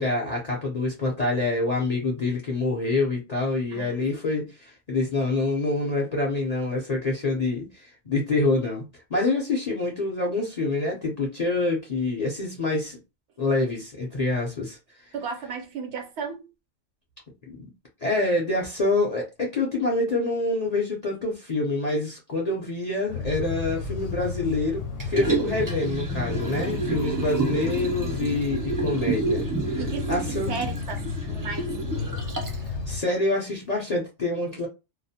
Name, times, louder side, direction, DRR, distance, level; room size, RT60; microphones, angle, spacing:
voice 1, 0.0-13.0 13.4-14.8 17.5-17.7 18.0-30.6 32.9-34.7, left 2 dB, 45° left, 0.5 m, -26 dB
voice 2, 15.1-16.5 29.8-30.1 30.5-31.7, right 5 dB, 65° right, 0.9 m, -34 dB
sound 1, 23.1-33.0, left 4 dB, 70° left, 0.9 m, -32 dB
Liquid, 25.0-32.7 33.1-33.2, right 4 dB, 30° right, 0.3 m, -30 dB
2.3 x 2.1 x 2.7 m
omnidirectional pair, 1.3 m